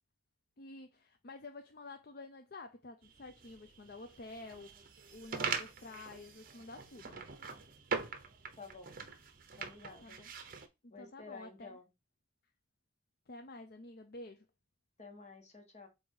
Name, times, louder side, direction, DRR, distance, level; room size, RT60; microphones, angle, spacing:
voice 1, 0.6-7.2 10.0-10.3 10.8-11.8 13.3-14.5, left 2 dB, 55° left, 0.6 m, -50 dB
sound 1, 3.0-10.7, right 5 dB, 50° right, 0.9 m, -42 dB
voice 2, 8.6-9.0 9.6-10.2 10.9-11.9 15.0-15.9, left 4 dB, 35° left, 1.5 m, -51 dB
8.0 x 2.9 x 4.7 m
head